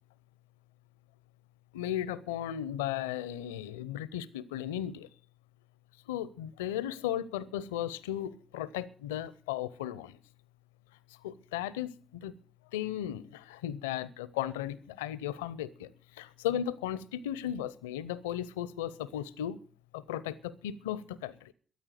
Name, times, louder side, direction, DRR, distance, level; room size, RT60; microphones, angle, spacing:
voice 1, 1.7-5.1 6.1-10.2 11.2-12.3 12.7-15.9 16.2-19.6 19.9-21.5, left 11 dB, 85° left, 0.6 m, -36 dB
13.5 x 12.5 x 6.6 m
hypercardioid pair, 40°, 0 cm